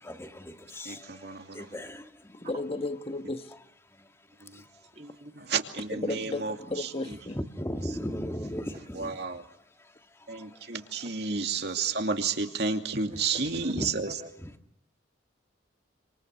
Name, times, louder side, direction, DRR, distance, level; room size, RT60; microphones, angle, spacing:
voice 1, 0.0-2.5 3.9-4.1 4.5-4.7 7.3-9.5 10.2-10.7 10.9-11.1 11.8-11.9 12.2-12.3 13.1-13.4 13.7-13.9 14.4-14.5, equal, 15° left, 1.8 m, -38 dB
voice 2, 0.9-1.7 4.4-4.6 5.5-6.6 9.0-9.4 10.3-14.1, right 4 dB, 60° right, 2.5 m, -31 dB
voice 3, 2.4-3.5 5.9-7.4, left 2 dB, 30° left, 1.4 m, -34 dB
voice 4, 4.9-5.4 11.3-11.4 12.9-14.3, right 1 dB, 35° right, 1.8 m, -46 dB
28.0 x 27.0 x 6.3 m
head